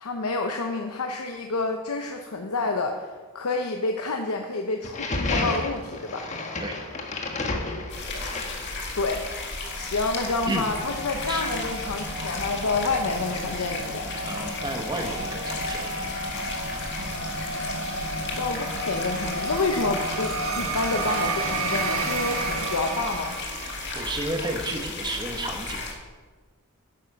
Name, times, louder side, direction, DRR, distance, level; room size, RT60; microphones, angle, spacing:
voice 1, 0.0-6.3 8.9-9.3 9.7-14.1 18.3-23.4, left 3 dB, 85° left, 4 dB, 0.8 m, -28 dB
sound 1, 4.8-9.2, left 2 dB, 35° left, 1.3 m, -31 dB
sound 2, 7.9-25.9, left 3 dB, 55° left, 1.9 m, -35 dB
sound 3, 9.6-24.3, right 2 dB, 70° right, 1.7 m, -32 dB
voice 2, 14.2-16.2 23.6-25.8, right 1 dB, 20° right, 3 dB, 1.4 m, -32 dB
10.0 x 8.8 x 5.6 m, 1.4 s
head